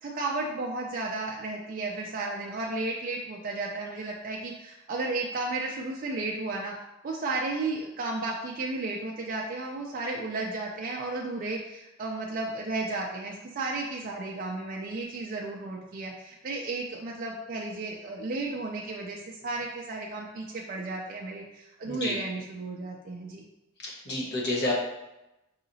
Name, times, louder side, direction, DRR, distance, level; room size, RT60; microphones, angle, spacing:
voice 1, 0.0-6.7 7.0-23.4, right 2 dB, 40° right, -1 dB, 0.4 m, -33 dB
voice 2, 23.8-24.7, left 1 dB, 50° left, -3 dB, 1.0 m, -29 dB
4.8 x 2.8 x 2.6 m, 0.93 s
head